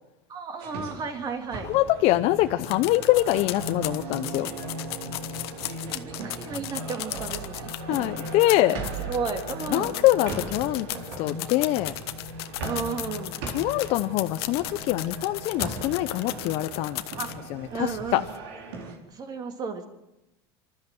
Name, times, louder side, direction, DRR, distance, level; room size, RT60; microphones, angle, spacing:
voice 1, 0.3-1.7 5.9-7.7 9.1-10.0 12.6-13.4 17.2-17.3 17.7-18.3 19.1-19.8, right 5 dB, 30° right, 5 dB, 3.3 m, -33 dB
sound 1, 0.6-19.0, right 3 dB, 75° right, 4.5 m, -41 dB
voice 2, 1.6-4.5 7.9-8.8 9.7-10.9 11.2-11.9 13.5-17.0 17.5-18.2, left 16 dB, 55° left, 9 dB, 0.8 m, -24 dB
sound 2, 1.6-18.3, right 1 dB, 90° right, 4.5 m, -40 dB
sound 3, 2.6-17.5 17.9-18.0 18.3-18.4, left 16 dB, 85° left, 1.2 m, -36 dB
25.5 x 13.5 x 7.8 m, 0.93 s
supercardioid pair, 130°, 13 cm